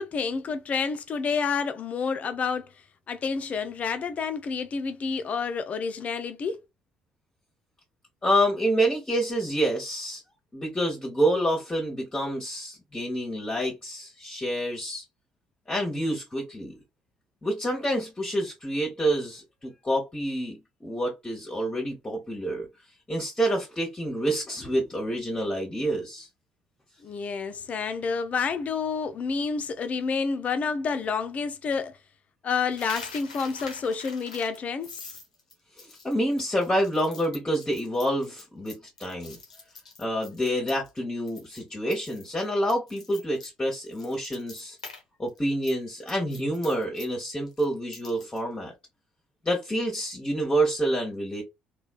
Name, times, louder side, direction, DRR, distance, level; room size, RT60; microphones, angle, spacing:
voice 1, 0.0-2.7 3.1-6.6 27.0-31.9 32.4-34.9, left 5 dB, 40° left, 0.6 m, -29 dB
voice 2, 8.2-10.2 10.5-15.0 15.7-16.7 17.4-22.7 23.1-26.3 35.8-39.4 40.0-44.8 45.2-48.7 49.4-51.4, right 1 dB, 20° left, 1.0 m, -28 dB
Coin (dropping), 32.7-41.0 41.3-41.6 41.9-45.0 45.3-48.4, left 3 dB, 85° left, 0.7 m, -45 dB
3.2 x 2.3 x 2.3 m
figure-of-eight pair, 50°, 4 cm